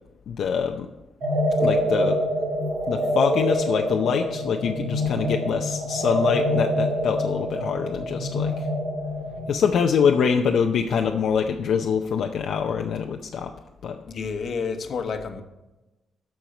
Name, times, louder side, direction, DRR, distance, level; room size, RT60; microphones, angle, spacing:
voice 1, 0.3-0.9 1.6-2.2 2.9-8.7 9.5-13.5 13.8-14.0, left 6 dB, 70° left, 3 dB, 0.6 m, -24 dB
sound 1, 1.2-9.5, equal, 70° right, 2.8 m, -25 dB
voice 2, 14.1-15.4, left 5 dB, 50° left, 6 dB, 1.0 m, -29 dB
13.5 x 4.6 x 5.1 m, 1.0 s
cardioid pair, 130°, 0 cm